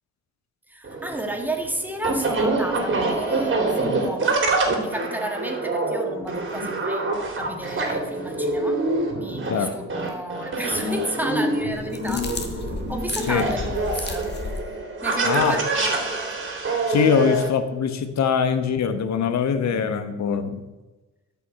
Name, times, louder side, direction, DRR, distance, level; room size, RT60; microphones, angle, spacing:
voice 1, 0.7-4.4 4.7-7.0 7.3-8.8 9.2-12.4 12.9-14.3 15.0-16.4, right 1 dB, 5° right, 4 dB, 1.6 m, -32 dB
sound 1, 0.8-17.5, right 2 dB, 40° right, 2.7 m, -26 dB
sound 2, 11.7-14.6, left 4 dB, 35° left, 1.5 m, -33 dB
voice 2, 15.2-15.6 16.9-20.7, left 7 dB, 65° left, 9 dB, 1.1 m, -22 dB
13.0 x 5.6 x 4.7 m, 1.1 s
cardioid pair, 90°, 30 cm